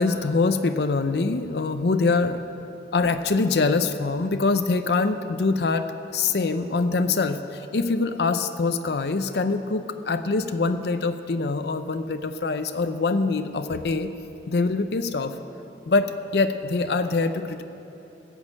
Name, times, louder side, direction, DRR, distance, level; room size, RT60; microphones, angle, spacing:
voice 1, 0.0-2.5 2.9-5.9 6.1-14.1 14.5-15.4 15.9-17.6, left 3 dB, 70° left, 9 dB, 0.5 m, -24 dB
15.5 x 6.4 x 8.6 m, 2.9 s
head